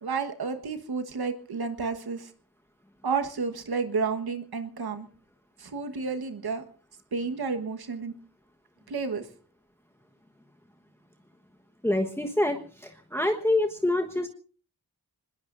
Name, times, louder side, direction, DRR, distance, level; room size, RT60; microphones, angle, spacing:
voice 1, 0.0-2.3 3.0-5.1 5.6-6.6 7.1-8.1 8.9-9.3, right 5 dB, 75° right, 7 dB, 1.5 m, -31 dB
voice 2, 11.8-14.3, left 1 dB, 5° left, 3 dB, 1.3 m, -26 dB
25.0 x 20.5 x 2.6 m, 0.40 s
wide cardioid pair, 85°, 38 cm